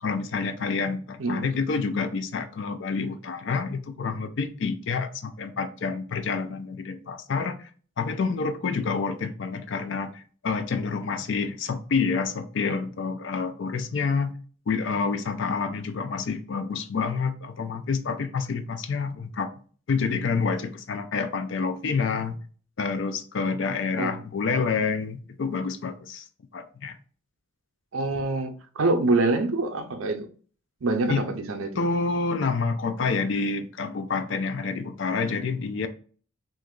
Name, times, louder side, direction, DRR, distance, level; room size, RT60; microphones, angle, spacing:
voice 1, 0.0-7.7 8.0-14.3 14.7-19.5 19.9-22.4 22.8-26.2 26.5-27.0 31.1-31.3 31.8-35.9, left 4 dB, 60° left, 0.4 m, -28 dB
voice 2, 27.9-30.3 30.8-31.8, right 2 dB, 75° right, 0.5 m, -25 dB
2.9 x 2.6 x 3.6 m
head